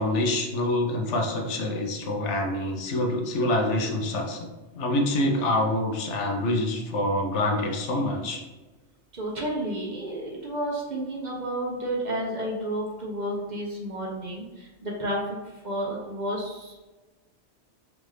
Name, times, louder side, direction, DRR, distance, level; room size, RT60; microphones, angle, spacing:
voice 1, 0.0-8.4, left 1 dB, 80° left, 2 dB, 1.0 m, -26 dB
voice 2, 9.1-15.4 15.6-16.8, right 1 dB, 45° right, -2 dB, 0.7 m, -31 dB
4.6 x 2.6 x 3.2 m, 1.1 s
omnidirectional pair, 1.2 m